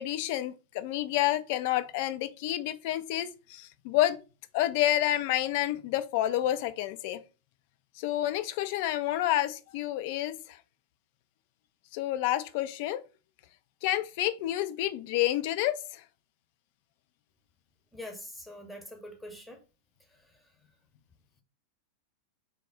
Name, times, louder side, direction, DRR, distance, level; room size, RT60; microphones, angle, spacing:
voice 1, 0.0-4.2 4.5-7.2 8.0-10.6 11.9-13.0 13.8-16.0, left 13 dB, 50° left, 0.3 m, -29 dB
voice 2, 17.9-19.6 20.2-20.3, left 1 dB, 5° left, 0.7 m, -44 dB
3.4 x 2.0 x 3.4 m
figure-of-eight pair, 90°, 0 cm